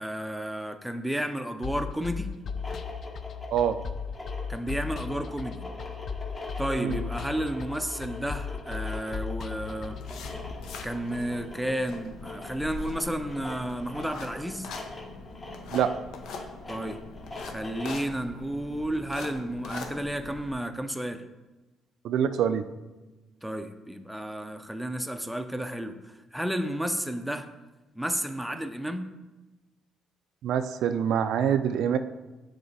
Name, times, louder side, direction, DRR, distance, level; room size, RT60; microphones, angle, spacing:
voice 1, 0.0-2.3 4.5-5.6 6.6-10.0 10.8-14.7 16.7-17.0 17.5-21.2 23.4-27.5 28.0-29.1, right 1 dB, ahead, 7 dB, 0.5 m, -32 dB
sound 1, 1.6-10.5, left 6 dB, 50° left, 0.4 m, -36 dB
sound 2, 2.4-18.1, left 2 dB, 30° left, 1.3 m, -43 dB
sound 3, 9.7-20.5, left 4 dB, 75° left, 0.7 m, -42 dB
voice 2, 22.0-22.6 30.4-32.0, right 8 dB, 70° right, 10 dB, 0.3 m, -25 dB
6.9 x 3.4 x 4.1 m, 1.1 s
cardioid pair, 85°, 0 cm